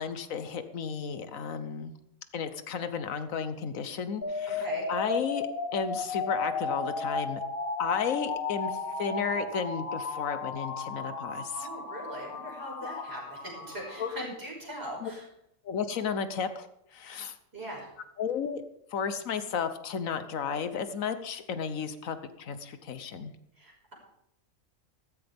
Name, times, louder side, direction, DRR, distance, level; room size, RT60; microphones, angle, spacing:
voice 1, 0.0-1.9 2.3-5.5 5.7-7.4 7.8-11.7 12.8-13.0 14.0-14.1 15.0-15.1 15.6-16.7 16.9-17.3 18.2-18.6 18.9-23.3, left 6 dB, 80° left, 10 dB, 1.4 m, -33 dB
sound 1, 4.2-14.2, left 4 dB, 45° left, 1.4 m, -34 dB
voice 2, 11.6-15.2 17.5-17.9 23.6-23.9, right 1 dB, 50° right, -2 dB, 6.0 m, -40 dB
14.5 x 14.5 x 3.6 m, 0.77 s
omnidirectional pair, 1.4 m